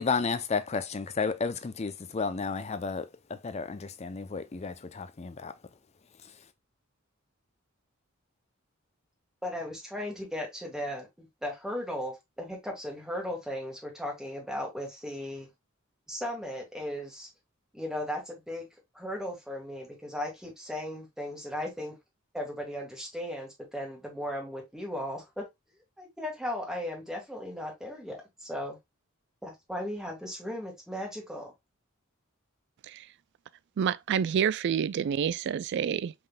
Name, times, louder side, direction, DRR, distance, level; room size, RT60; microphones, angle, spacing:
voice 1, 0.0-5.5, left 5 dB, 30° left, 0.5 m, -32 dB
voice 2, 9.4-15.5 16.1-17.3 17.7-18.7 18.9-22.0 22.3-25.4 26.0-28.8 29.4-31.5, left 1 dB, 5° right, 1.6 m, -36 dB
voice 3, 33.8-36.1, right 8 dB, 55° right, 0.3 m, -28 dB
5.5 x 3.7 x 2.2 m
head